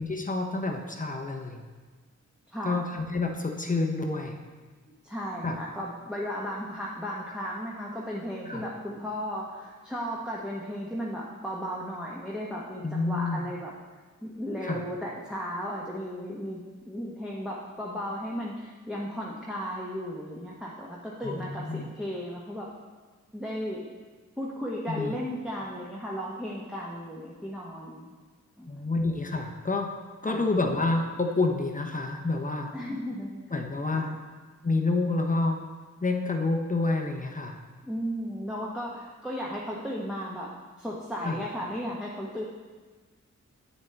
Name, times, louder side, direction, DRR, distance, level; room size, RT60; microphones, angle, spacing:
voice 1, 0.0-1.6 2.6-4.4 5.4-5.6 8.4-8.6 12.8-13.5 14.6-14.8 21.2-21.9 24.9-25.2 28.7-29.9 30.2-32.7 33.5-34.1 34.6-35.6 36.0-37.6 41.2-41.4, left 3 dB, 25° left, 2 dB, 0.8 m, -28 dB
voice 2, 2.5-2.8 5.0-13.7 14.2-16.6 16.9-22.7 23.3-23.8 24.4-28.1 28.6-28.7 30.3-30.5 32.7-33.4 33.9-34.2 37.8-40.5 40.8-42.4, equal, 5° right, -5 dB, 1.1 m, -35 dB
8.2 x 6.8 x 3.4 m, 1.4 s
cardioid pair, 55°, 30 cm